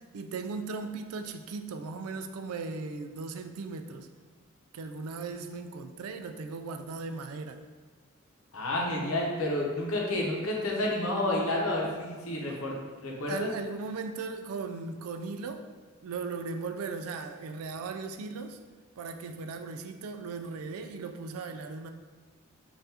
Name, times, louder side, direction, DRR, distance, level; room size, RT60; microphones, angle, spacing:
voice 1, 0.0-4.1 4.7-7.6 12.5-12.6 13.3-15.7 16.0-18.6 19.0-21.9, right 4 dB, 85° right, 7 dB, 0.4 m, -37 dB
voice 2, 8.5-13.5, left 1 dB, 80° left, -2 dB, 0.8 m, -30 dB
5.5 x 2.5 x 2.8 m, 1.4 s
head